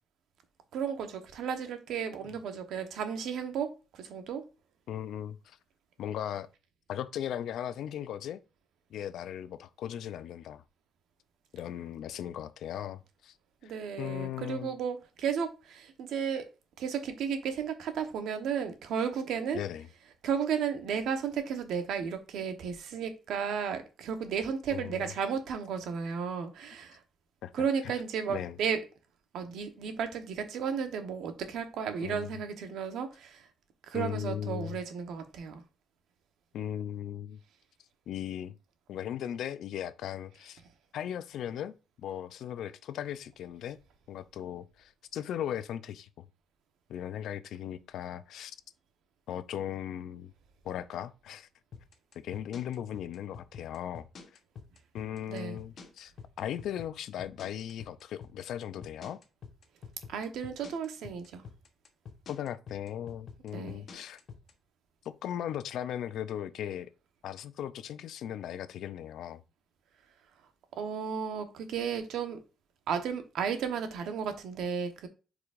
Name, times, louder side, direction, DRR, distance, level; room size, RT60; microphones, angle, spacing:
voice 1, 0.7-4.4 13.6-16.5 16.8-19.6 20.2-27.0 27.5-28.8 29.3-33.4 33.9-35.6 55.3-55.6 60.1-61.4 63.5-63.8 70.8-72.4 72.9-75.1, right 7 dB, 80° right, 1.1 m, -34 dB
voice 2, 4.9-5.6 6.0-6.5 6.9-8.4 8.9-10.6 11.5-13.3 13.6-13.7 14.0-14.8 19.5-19.9 24.7-25.1 27.4-27.5 27.8-27.9 28.3-28.6 32.0-32.3 33.9-34.8 36.5-37.4 38.1-38.5 38.9-40.6 40.9-43.8 44.1-46.3 46.9-48.6 49.3-50.3 50.6-51.5 52.1-54.1 54.9-56.1 56.4-59.2 62.3-64.2 65.0-66.9 67.2-69.4, left 10 dB, 75° left, 0.5 m, -37 dB
sound 1, 51.7-64.5, left 6 dB, 40° left, 1.0 m, -47 dB
8.5 x 4.9 x 2.6 m
cardioid pair, 175°, 0 cm